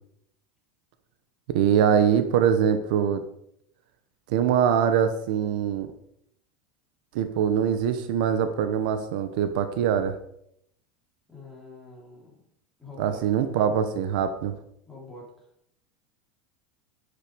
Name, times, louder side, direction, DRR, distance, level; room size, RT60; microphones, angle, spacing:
voice 1, 1.5-3.2 4.3-5.9 7.1-10.2 13.0-14.5, right 8 dB, 65° right, 10 dB, 1.1 m, -23 dB
voice 2, 11.3-12.4 12.8-13.5 14.9-15.5, left 2 dB, 5° left, -5 dB, 4.3 m, -46 dB
10.5 x 10.5 x 5.2 m, 0.72 s
supercardioid pair, 165°, 5 cm